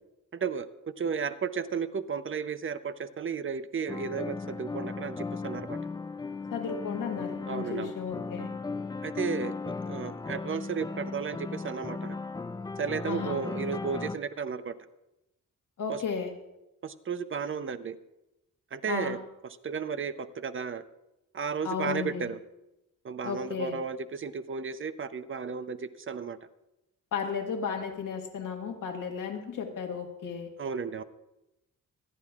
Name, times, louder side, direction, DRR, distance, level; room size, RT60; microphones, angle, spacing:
voice 1, 0.3-0.7 1.0-5.8 7.5-7.9 9.0-12.2 12.8-14.7 15.9-16.0 16.8-18.0 18.7-19.2 19.6-20.8 21.3-22.4 23.0-26.4 30.6-31.0, right 6 dB, 40° right, 12 dB, 0.6 m, -33 dB
sound 1, 3.9-14.2, left 4 dB, 15° left, 0.3 m, -36 dB
voice 2, 6.5-8.5 13.0-13.4 15.8-16.3 18.9-19.2 21.6-22.3 23.2-23.8 27.1-30.5, left 6 dB, 80° left, 3 dB, 1.6 m, -34 dB
25.5 x 10.5 x 2.4 m, 0.93 s
wide cardioid pair, 135°, 31 cm